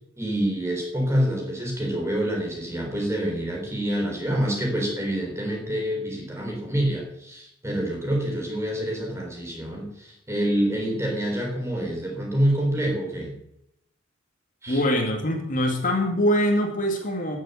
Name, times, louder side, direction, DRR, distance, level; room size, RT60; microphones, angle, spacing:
voice 1, 0.2-13.4 14.6-14.8, right 1 dB, 15° right, 0 dB, 4.1 m, -27 dB
voice 2, 14.7-17.4, equal, 45° left, 3 dB, 2.1 m, -23 dB
14.0 x 7.6 x 8.4 m, 0.77 s
head